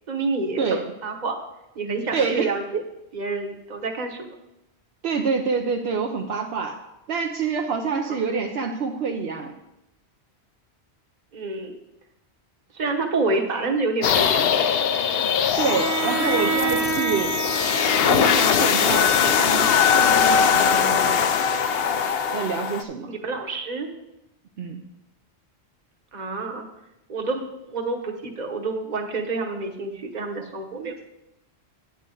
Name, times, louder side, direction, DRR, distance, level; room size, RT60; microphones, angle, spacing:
voice 1, 0.1-1.3 1.7-2.8 3.1-4.4 8.1-8.2 11.3-11.7 12.7-14.5 23.1-23.9 26.1-26.6 27.1-30.9, right 3 dB, 40° right, 2 dB, 1.2 m, -28 dB
voice 2, 2.1-2.8 5.0-6.8 7.1-9.5 15.6-17.4 18.0-21.4 22.3-23.1 24.6-24.8, right 5 dB, 70° right, 3 dB, 0.9 m, -27 dB
sound 1, 14.0-22.8, left 7 dB, 65° left, 0.8 m, -21 dB
Bowed string instrument, 15.6-20.6, right 3 dB, 25° right, 0.4 m, -28 dB
9.3 x 8.5 x 3.8 m, 0.90 s
omnidirectional pair, 1.1 m